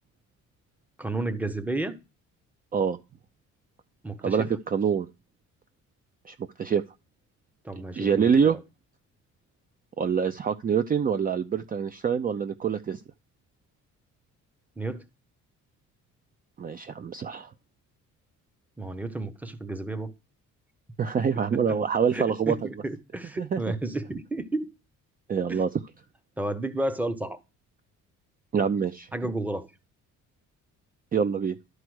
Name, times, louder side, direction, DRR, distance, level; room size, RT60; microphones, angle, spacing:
voice 1, 1.0-2.0 4.0-4.5 7.6-8.6 14.8-15.0 18.8-20.1 21.5-21.8 22.1-24.7 25.5-25.6 26.4-27.4 29.1-29.7, right 2 dB, 5° right, 0.9 m, -32 dB
voice 2, 4.2-5.1 6.3-6.8 8.0-8.6 10.0-13.0 16.6-17.5 21.0-22.5 23.4-23.6 25.3-25.7 28.5-29.1 31.1-31.6, right 7 dB, 30° right, 0.5 m, -25 dB
12.5 x 4.8 x 6.3 m
cardioid pair, 140°, 31 cm